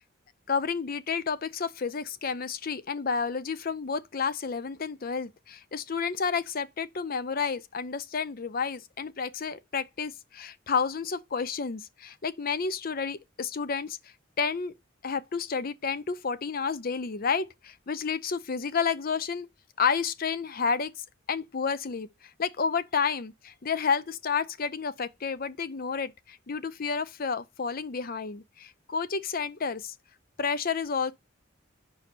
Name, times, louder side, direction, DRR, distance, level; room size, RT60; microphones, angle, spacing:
voice 1, 0.5-14.0 14.4-14.7 15.0-19.5 19.8-20.9 21.3-22.1 22.4-29.9 30.4-31.1, left 5 dB, 45° left, 0.6 m, -30 dB
5.2 x 4.7 x 6.0 m
head